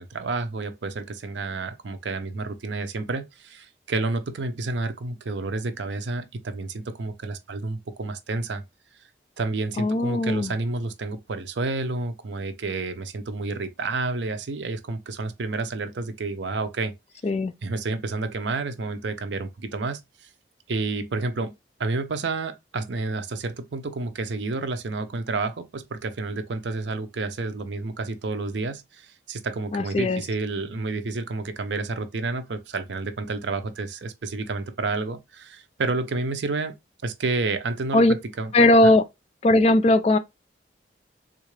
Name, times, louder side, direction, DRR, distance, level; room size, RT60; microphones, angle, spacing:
voice 1, 0.0-8.6 9.4-16.9 17.6-20.3 20.7-21.5 21.8-36.7 37.0-38.5 38.8-38.9, right 3 dB, 75° right, 0.6 m, -30 dB
voice 2, 9.8-10.5 17.2-17.5 29.7-30.2 37.9-38.1 38.5-39.0 39.4-40.2, left 1 dB, 35° left, 0.3 m, -18 dB
3.7 x 2.4 x 3.1 m
head